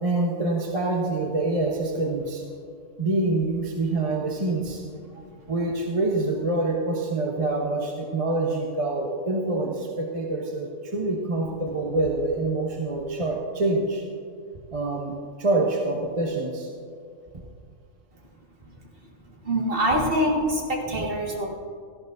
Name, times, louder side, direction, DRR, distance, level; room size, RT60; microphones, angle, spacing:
voice 1, 0.0-2.5 3.0-4.8 5.5-14.0 14.7-16.7, right 2 dB, 30° right, -2 dB, 1.1 m, -26 dB
voice 2, 19.3-21.5, equal, 45° right, -2 dB, 2.0 m, -25 dB
17.5 x 13.5 x 2.6 m, 2.2 s
omnidirectional pair, 1.3 m